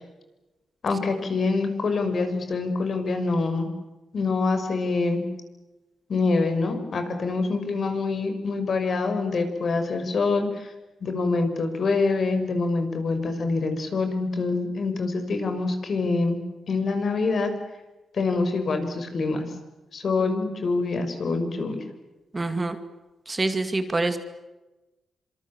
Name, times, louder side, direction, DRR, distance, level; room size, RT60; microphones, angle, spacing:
voice 1, 0.8-3.7 4.1-5.2 6.1-10.7 11.0-16.4 16.7-17.5 18.1-19.4 19.9-21.8, left 3 dB, 50° left, 7 dB, 5.9 m, -25 dB
voice 2, 22.3-22.8 23.3-24.2, right 2 dB, 20° right, 8 dB, 2.2 m, -25 dB
27.0 x 26.5 x 7.4 m, 1.1 s
cardioid pair, 120°, 0 cm